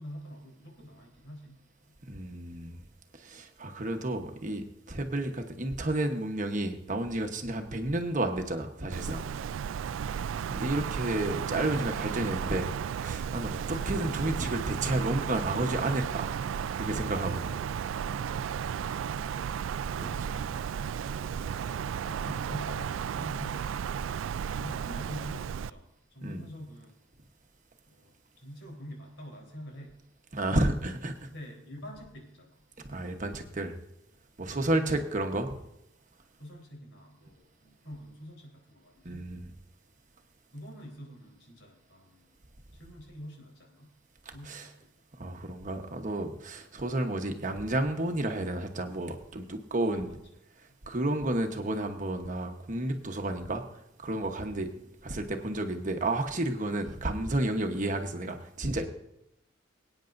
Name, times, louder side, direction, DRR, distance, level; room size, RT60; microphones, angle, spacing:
voice 1, 0.0-2.0 9.6-10.5 18.6-21.1 22.0-24.2 24.5-26.9 27.8-30.1 30.5-30.9 31.3-32.6 34.4-35.4 36.4-39.3 40.5-42.3 42.7-44.0 44.3-45.3 49.8-50.2 54.4-54.9, equal, 75° left, 0 dB, 4.0 m, -47 dB
voice 2, 2.0-2.8 3.2-9.2 10.5-12.7 13.0-16.3 16.7-17.6 20.0-20.1 26.2-26.4 30.3-31.1 32.9-33.8 34.4-35.5 39.0-39.5 44.3-44.6 45.2-50.1 50.9-53.6 54.0-54.7 55.0-58.8, right 1 dB, 40° right, 4 dB, 1.1 m, -31 dB
Wind, 8.9-25.7, right 7 dB, 75° right, 0.3 m, -34 dB
23.5 x 9.2 x 2.6 m, 0.82 s
head